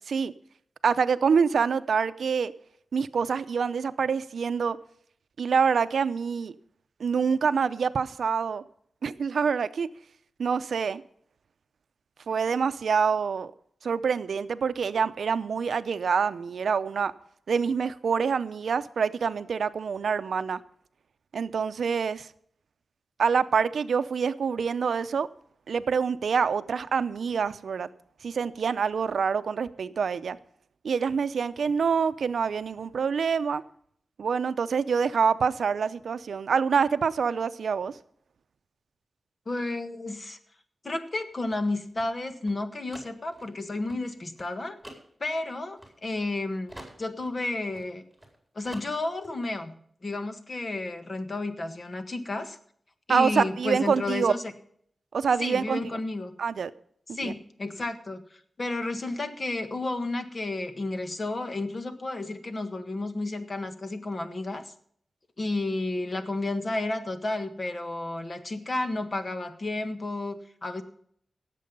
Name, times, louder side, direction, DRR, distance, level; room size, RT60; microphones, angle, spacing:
voice 1, 0.8-2.5 2.9-4.8 5.4-6.5 7.0-8.6 9.0-9.9 10.4-11.0 12.3-13.5 13.8-17.1 17.5-20.6 21.3-22.3 23.2-25.3 25.7-27.9 28.2-30.4 30.8-33.6 34.2-37.9 53.1-54.4 55.1-55.8 56.4-56.7 57.2-57.3, right 6 dB, 80° right, 0.6 m, -26 dB
voice 2, 39.4-40.4 40.8-44.8 45.2-46.7 47.0-48.0 48.5-49.7 50.0-52.6 53.1-54.5 55.4-56.3 57.1-64.7 65.4-70.8, left 2 dB, 45° left, 1.6 m, -32 dB
sound 1, 41.1-46.4 46.7-48.4 48.6-49.3, right 1 dB, ahead, 4.5 m, -48 dB
17.0 x 7.6 x 5.3 m
wide cardioid pair, 75°, 0 cm